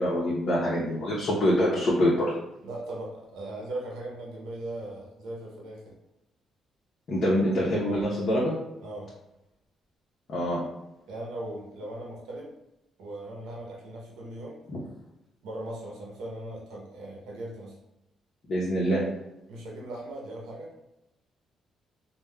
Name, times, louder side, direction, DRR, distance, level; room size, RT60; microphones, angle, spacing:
voice 1, 0.0-2.3 7.1-8.5 10.3-10.6 14.7-14.8 18.5-19.0, equal, 55° left, -6 dB, 0.7 m, -25 dB
voice 2, 2.6-6.0 8.8-9.1 11.1-12.5 13.0-14.6 15.4-17.8 19.5-20.7, right 1 dB, 85° right, -2 dB, 0.7 m, -39 dB
3.4 x 2.2 x 2.2 m, 0.90 s
cardioid pair, 90°, 0 cm